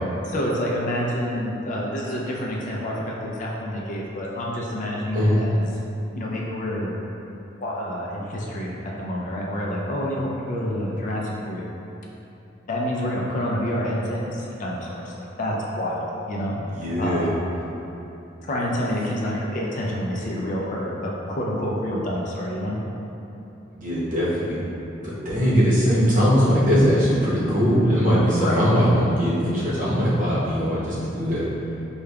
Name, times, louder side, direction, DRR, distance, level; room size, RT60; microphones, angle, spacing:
voice 1, 0.2-5.7 6.1-6.9 7.6-11.7 12.7-16.5 17.0-17.3 18.4-22.7 28.4-28.7, equal, 45° left, -3 dB, 0.4 m, -28 dB
voice 2, 16.5-17.3 23.7-24.6 25.0-31.5, equal, 45° right, -9 dB, 0.9 m, -20 dB
4.9 x 2.3 x 2.2 m, 3.0 s
head